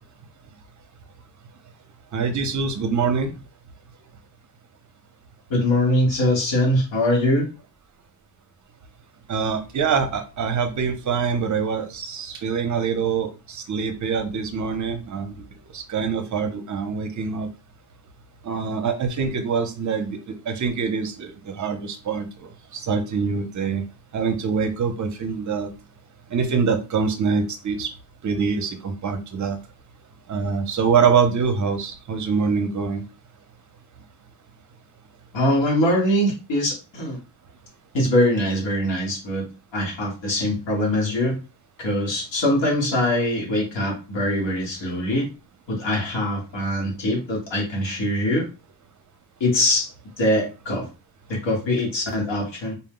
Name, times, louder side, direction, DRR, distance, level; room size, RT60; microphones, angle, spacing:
voice 1, 2.1-3.3 9.3-15.5 15.7-17.5 18.4-23.8 24.1-25.7 26.3-27.9 28.2-29.6 30.3-33.0, right 5 dB, 45° right, 8 dB, 0.6 m, -24 dB
voice 2, 5.5-7.5 35.3-37.2 37.9-39.4 39.7-41.4 41.8-45.3 45.7-48.5 49.4-49.9 50.2-50.9 51.3-52.7, left 1 dB, 85° left, -2 dB, 1.7 m, -22 dB
4.2 x 2.1 x 3.7 m, 0.31 s
wide cardioid pair, 175°, 42 cm